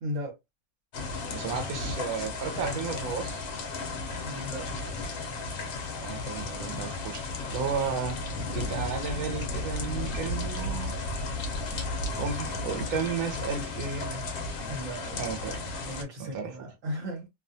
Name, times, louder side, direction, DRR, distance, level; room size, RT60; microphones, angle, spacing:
voice 1, 0.0-0.3 4.2-4.7 14.7-15.2 15.8-17.3, left 1 dB, 60° right, 1.5 m, -36 dB
sound 1, 0.9-16.0, left 3 dB, 60° left, 0.8 m, -34 dB
voice 2, 1.3-3.4 6.0-7.2 7.5-8.2 8.5-11.0 12.2-14.2 15.1-15.7 16.2-16.5, right 5 dB, 85° right, 1.1 m, -33 dB
2.7 x 2.2 x 2.6 m
omnidirectional pair, 1.5 m